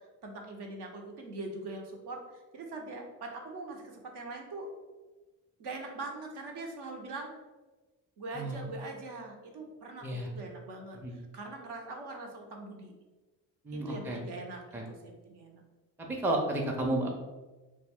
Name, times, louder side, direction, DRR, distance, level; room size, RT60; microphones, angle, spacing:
voice 1, 0.2-2.2 2.5-4.7 5.6-7.3 8.2-12.9 13.7-15.6, right 2 dB, 60° right, 1 dB, 0.7 m, -42 dB
voice 2, 8.3-8.6 10.0-10.3 11.0-11.2 13.6-14.2 14.7-14.9 16.0-17.1, right 1 dB, 5° right, 0 dB, 0.4 m, -32 dB
2.3 x 2.1 x 3.4 m, 1.2 s
hypercardioid pair, 50°, 47 cm